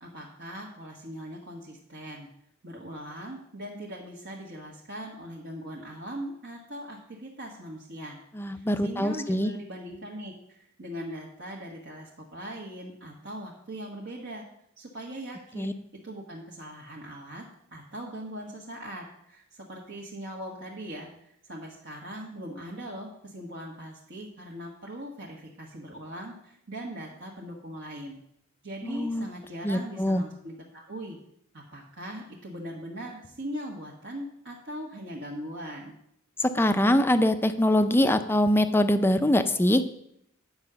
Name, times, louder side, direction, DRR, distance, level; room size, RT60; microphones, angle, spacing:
voice 1, 0.0-2.3 2.6-8.2 8.4-14.4 14.8-15.8 16.0-17.4 17.7-28.2 28.6-31.2 31.5-36.0, right 1 dB, 60° right, -3 dB, 1.4 m, -40 dB
voice 2, 8.3-9.5 15.6-15.7 28.8-29.3 29.6-30.2 36.4-39.8, left 1 dB, 10° left, 10 dB, 0.5 m, -23 dB
9.4 x 4.9 x 6.7 m, 0.74 s
head